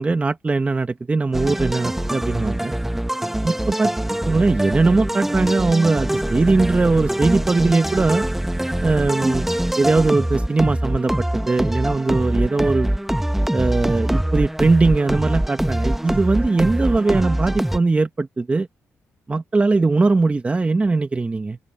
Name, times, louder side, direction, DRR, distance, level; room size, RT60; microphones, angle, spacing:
voice 1, 0.0-2.7 3.4-3.9 4.2-8.2 8.8-9.5 9.8-12.9 13.5-18.7 19.3-21.6, right 3 dB, 25° right, 1.4 m, -20 dB
sound 1, 1.3-17.8, right 1 dB, 5° right, 1.2 m, -23 dB
open air
cardioid pair, 90°, 5 cm